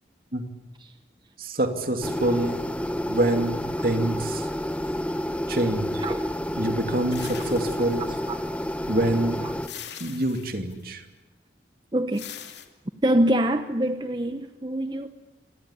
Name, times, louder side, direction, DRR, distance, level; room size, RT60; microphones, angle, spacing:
voice 1, 1.4-2.6 3.1-4.5 5.5-6.0 6.6-8.0 8.9-9.4 10.0-11.0, right 1 dB, 55° right, 6 dB, 2.7 m, -26 dB
sound 1, 2.0-9.7, equal, 5° left, 0.9 m, -29 dB
sound 2, 7.1-8.5 9.6-10.8 12.1-12.7, left 9 dB, 80° left, 2.6 m, -42 dB
voice 2, 8.0-8.4 9.4-9.5 11.9-12.3 13.0-15.1, right 1 dB, 25° right, 9 dB, 0.8 m, -25 dB
26.0 x 19.0 x 10.0 m, 1.1 s
head